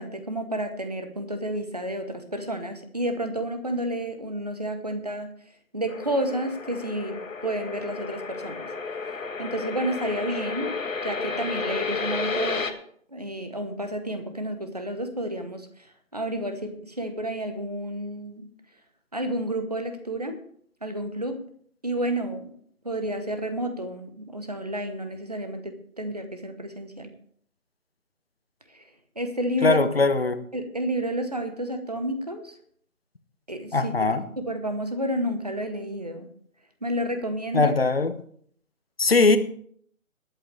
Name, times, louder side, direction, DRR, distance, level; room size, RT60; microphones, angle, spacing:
voice 1, 0.0-5.3 5.7-8.7 9.4-10.7 11.0-12.7 13.1-18.5 19.1-20.4 20.8-21.4 21.8-22.5 22.8-27.1 28.7-28.8 29.2-29.8 30.5-32.6 33.5-33.9 34.4-36.3 36.8-37.7, right 1 dB, 30° right, 7 dB, 1.1 m, -30 dB
sound 1, 5.9-12.7, left 4 dB, 65° left, 1.5 m, -32 dB
voice 2, 29.6-30.4 33.7-34.2 37.5-38.2 39.0-39.4, left 3 dB, 45° left, 11 dB, 1.0 m, -20 dB
21.0 x 8.1 x 3.4 m, 0.62 s
figure-of-eight pair, 175°, 42 cm